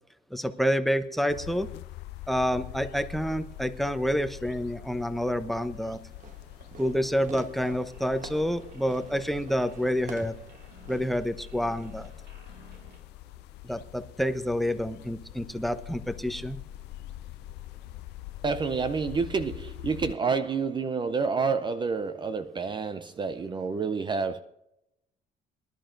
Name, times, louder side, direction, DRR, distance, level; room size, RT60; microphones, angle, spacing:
voice 1, 0.3-1.7 2.3-6.0 6.8-10.3 10.9-12.1 13.6-16.6, equal, ahead, 0.8 m, -28 dB
sound 1, 1.3-20.2, left 15 dB, 85° left, 0.5 m, -44 dB
Fireworks, 6.1-11.2, right 5 dB, 50° right, 1.2 m, -48 dB
sound 2, 7.9-13.0, right 3 dB, 80° right, 2.3 m, -55 dB
voice 2, 18.4-24.4, right 5 dB, 25° right, 0.5 m, -29 dB
24.0 x 11.5 x 2.6 m
cardioid pair, 110°, 17 cm